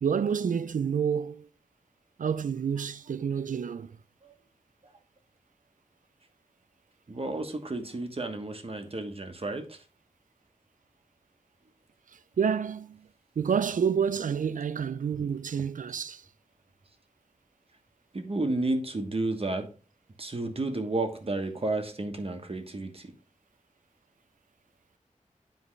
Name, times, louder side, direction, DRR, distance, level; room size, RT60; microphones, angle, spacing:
voice 1, 0.0-1.5 2.2-4.0 12.1-13.1 13.4-16.2, right 7 dB, 80° right, 0.4 m, -29 dB
voice 2, 7.1-9.8 18.1-19.7 20.2-23.1, right 2 dB, 45° right, 1.2 m, -32 dB
9.8 x 4.8 x 3.2 m
wide cardioid pair, 85°, 13 cm